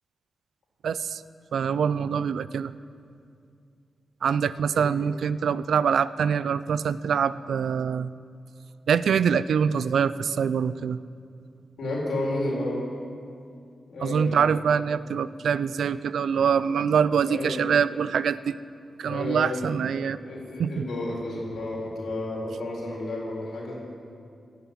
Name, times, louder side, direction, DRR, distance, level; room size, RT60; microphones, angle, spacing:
voice 1, 0.8-1.2 1.5-2.7 4.2-8.1 8.9-11.0 14.0-18.5 19.0-20.2 20.6-20.9, right 7 dB, 85° right, 16 dB, 0.4 m, -24 dB
voice 2, 11.8-12.8 13.9-14.6 17.2-17.7 19.1-19.6 20.2-23.8, left 1 dB, 85° left, -3 dB, 3.9 m, -31 dB
15.5 x 7.0 x 9.0 m, 2.4 s
cardioid pair, 65°, 0 cm